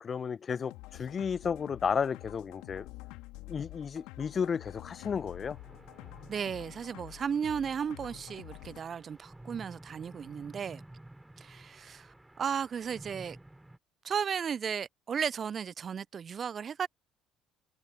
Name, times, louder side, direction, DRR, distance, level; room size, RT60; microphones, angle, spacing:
voice 1, 0.0-2.9 3.5-5.6, left 6 dB, 40° left, 1.1 m, -33 dB
sound 1, 0.6-8.8, left 22 dB, 70° left, 2.6 m, -48 dB
sound 2, 5.2-13.8, right 1 dB, 10° right, 4.0 m, -52 dB
voice 2, 6.3-10.8 11.4-13.4 14.0-16.9, right 7 dB, 40° right, 0.8 m, -35 dB
hypercardioid pair, 55°, 0 cm